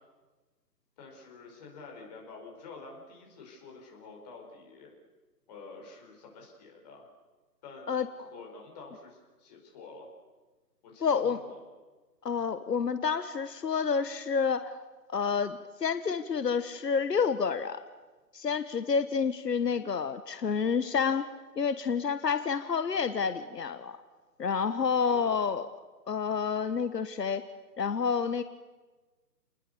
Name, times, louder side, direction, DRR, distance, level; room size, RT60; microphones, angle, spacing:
voice 1, 1.0-4.9 5.5-7.0 7.6-10.1 10.8-11.6 25.1-25.4, left 4 dB, 25° left, -1 dB, 5.5 m, -49 dB
voice 2, 11.0-11.4 12.2-14.8 15.1-17.8 18.3-21.3 21.6-24.0 24.4-25.7 26.1-27.5 27.8-28.4, left 6 dB, 75° left, 11 dB, 1.3 m, -29 dB
29.0 x 21.0 x 6.9 m, 1.3 s
hypercardioid pair, 160°, 49 cm